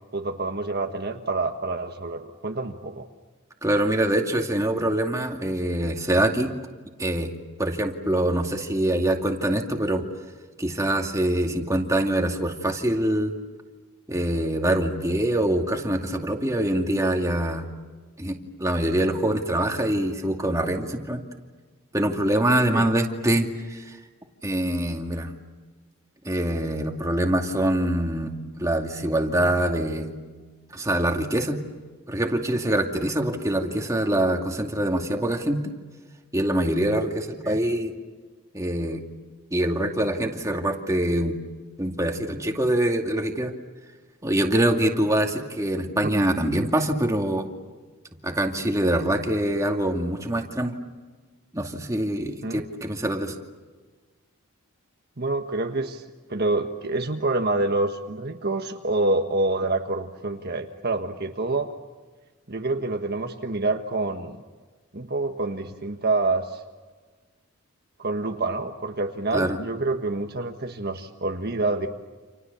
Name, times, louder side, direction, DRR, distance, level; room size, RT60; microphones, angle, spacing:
voice 1, 0.1-3.1 22.7-22.9 37.4-37.6 46.0-46.2 52.4-52.6 55.2-56.0 56.3-61.7 62.5-64.4 64.9-66.6 68.0-71.9, right 2 dB, 45° right, 4 dB, 1.5 m, -27 dB
voice 2, 3.6-6.5 7.0-7.3 7.6-10.0 10.6-13.3 14.1-17.7 18.2-21.2 21.9-24.0 24.4-25.3 26.2-30.1 30.7-31.6 32.1-35.6 36.3-37.9 38.5-39.0 39.5-41.4 41.8-43.5 44.2-47.5 48.2-50.7 51.5-53.4 69.3-69.6, right 1 dB, 15° right, 2 dB, 2.4 m, -24 dB
30.0 x 28.0 x 7.0 m, 1.4 s
head